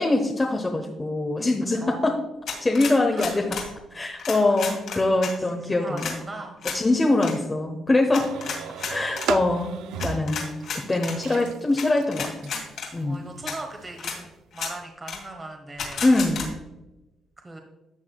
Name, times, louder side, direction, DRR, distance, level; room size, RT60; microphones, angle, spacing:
voice 1, 0.0-2.2 2.6-3.4 3.9-6.2 6.7-8.3 8.9-12.5 12.9-13.2 16.0-16.5, left 2 dB, 25° left, 1 dB, 1.0 m, -23 dB
voice 2, 1.8-2.1 2.8-3.4 4.4-4.6 5.4-6.6 8.2-8.8 10.6-10.7 13.0-16.0 17.4-17.6, right 2 dB, 25° right, 3 dB, 1.2 m, -40 dB
sound 1, 2.5-3.7 4.2-5.3 6.0-6.2 6.6-6.8 7.2-7.3 8.1-9.3 10.0-11.2 11.8-11.9 12.1-12.9 13.5-13.6 14.0-14.2 14.5-14.7 15.1-15.2 15.8-16.5, left 5 dB, 70° left, 2.6 m, -32 dB
sound 2, 8.2-14.4, right 7 dB, 90° right, 0.5 m, -37 dB
13.0 x 7.3 x 2.3 m, 1.0 s
cardioid pair, 90°, 0 cm